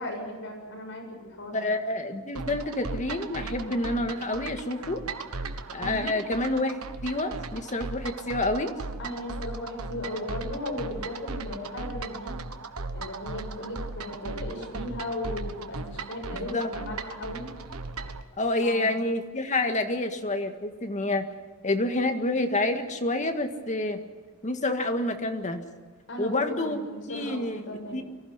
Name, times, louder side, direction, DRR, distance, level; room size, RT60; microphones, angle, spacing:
voice 1, 0.0-1.7 5.8-6.1 9.0-12.4 12.9-17.5 18.6-18.9 26.1-28.0, left 1 dB, 60° left, 0 dB, 7.7 m, -36 dB
voice 2, 1.5-5.0 5.7-6.7 7.0-8.7 16.4-16.7 18.4-21.3 21.6-24.0 24.4-25.6 26.2-26.8 27.1-28.0, left 2 dB, 35° left, 6 dB, 1.8 m, -28 dB
sound 1, 2.4-18.2, right 3 dB, 80° right, 1.3 m, -37 dB
24.0 x 15.0 x 9.7 m, 1.4 s
head